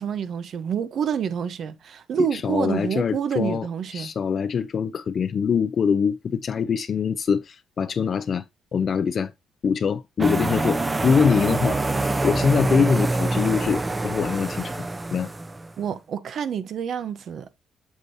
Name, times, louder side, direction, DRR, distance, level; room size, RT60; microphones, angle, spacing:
voice 1, 0.0-4.1 15.8-17.5, right 7 dB, 65° right, 0.8 m, -28 dB
voice 2, 2.2-3.7 3.9-8.4 8.7-9.3 9.6-11.8 12.2-15.3, left 6 dB, 50° left, 0.5 m, -24 dB
sound 1, 10.2-15.7, right 2 dB, 20° right, 0.7 m, -25 dB
8.2 x 6.2 x 2.7 m
cardioid pair, 90°, 0 cm